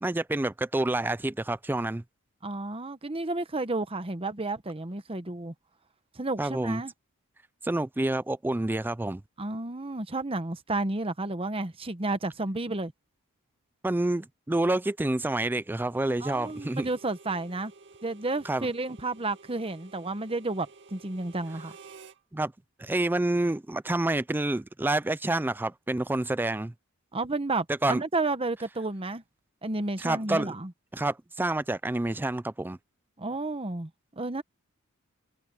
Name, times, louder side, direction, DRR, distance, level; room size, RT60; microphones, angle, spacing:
voice 1, 0.0-2.0 6.4-6.8 7.6-9.2 13.8-16.9 18.4-18.7 22.3-22.5 22.8-26.7 27.8-28.0 30.0-30.5 30.9-32.8, right 2 dB, 10° right, 0.3 m, -28 dB
voice 2, 2.4-5.5 6.2-6.9 9.4-12.9 16.2-17.7 18.0-21.8 27.1-29.2 29.6-30.7 33.2-34.4, right 2 dB, 25° right, 1.0 m, -31 dB
Harmonica, 15.9-22.2, right 4 dB, 55° right, 2.1 m, -52 dB
head